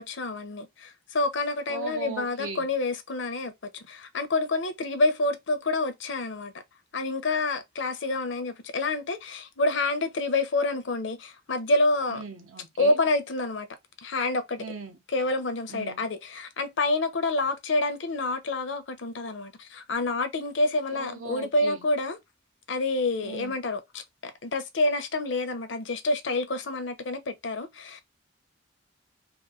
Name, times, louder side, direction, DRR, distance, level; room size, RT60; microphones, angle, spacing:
voice 1, 0.0-6.5 6.9-12.2 12.8-13.7 14.0-14.6 15.1-22.2 22.7-23.8 24.2-28.0, left 2 dB, 65° left, 0.7 m, -28 dB
voice 2, 1.7-2.7 12.1-13.0 14.6-15.0 15.7-16.1 20.9-21.9 23.2-23.6, right 4 dB, 85° right, 0.9 m, -39 dB
3.0 x 2.7 x 3.6 m
head